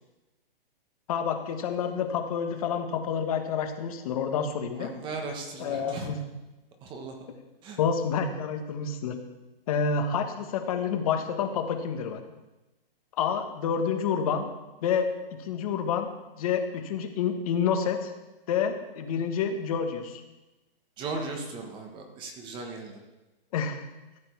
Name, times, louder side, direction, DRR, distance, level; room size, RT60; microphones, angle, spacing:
voice 1, 1.1-4.9 5.6-6.2 7.8-9.2 9.7-12.2 13.2-14.5 14.8-15.1 15.4-16.1 16.4-18.1 18.5-20.2 23.5-23.8, left 6 dB, 35° left, 6 dB, 1.4 m, -28 dB
voice 2, 4.8-6.1 6.8-7.2 7.6-7.8 21.0-23.0, right 3 dB, 15° right, 3 dB, 1.3 m, -37 dB
14.5 x 7.9 x 4.7 m, 1.0 s
hypercardioid pair, 160°, 30 cm